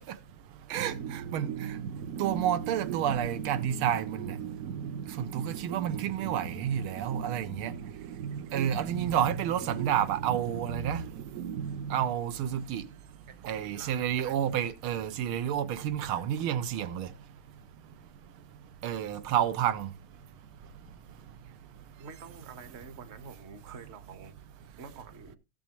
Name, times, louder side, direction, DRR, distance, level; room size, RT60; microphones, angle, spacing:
sound 1, 0.7-12.6, right 7 dB, 60° right, 0.9 m, -38 dB
voice 1, 0.7-1.8 2.2-4.3 5.2-7.7 8.5-11.0 11.9-12.8 13.5-17.1 18.8-19.9, right 10 dB, 85° right, 1.6 m, -30 dB
voice 2, 13.3-14.4 16.0-16.3 22.0-24.4 24.8-25.4, right 5 dB, 35° right, 1.3 m, -48 dB
16.5 x 7.0 x 3.0 m
omnidirectional pair, 2.3 m